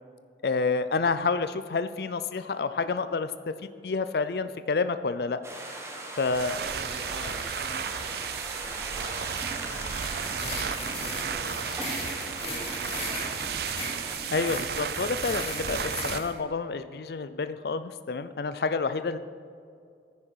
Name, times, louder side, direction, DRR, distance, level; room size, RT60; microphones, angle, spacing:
voice 1, 0.4-5.4 6.2-6.6 14.3-19.2, left 4 dB, 60° left, 12 dB, 0.4 m, -29 dB
sound 1, 5.4-14.2, right 2 dB, 15° right, 1.5 m, -39 dB
voice 2, 6.3-10.0 10.4-12.1 12.3-13.8, equal, ahead, -12 dB, 3.6 m, -44 dB
sound 2, 6.3-16.2, right 7 dB, 60° right, 0.4 m, -34 dB
sound 3, 9.3-16.3, left 1 dB, 35° left, 2.7 m, -38 dB
10.0 x 9.6 x 6.4 m, 2.4 s
head